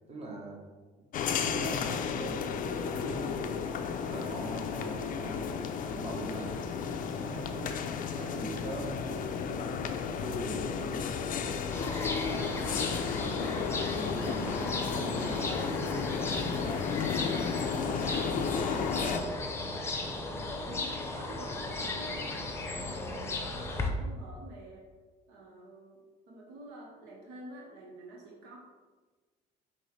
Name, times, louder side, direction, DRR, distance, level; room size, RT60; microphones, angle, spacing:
voice 1, 0.1-0.6 1.3-3.6 4.0-7.7 8.1-9.9 10.1-11.9 12.2-19.4 21.9-22.1, right 1 dB, 40° right, -1 dB, 1.1 m, -42 dB
sound 1, 1.1-19.2, left 6 dB, 55° left, 0.4 m, -33 dB
sound 2, 11.7-23.9, left 2 dB, 15° left, 0.6 m, -36 dB
voice 2, 20.3-24.9 25.3-26.0 26.3-28.6, right 1 dB, 85° right, -1 dB, 0.9 m, -49 dB
5.4 x 3.0 x 3.2 m, 1.3 s
cardioid pair, 110°, 17 cm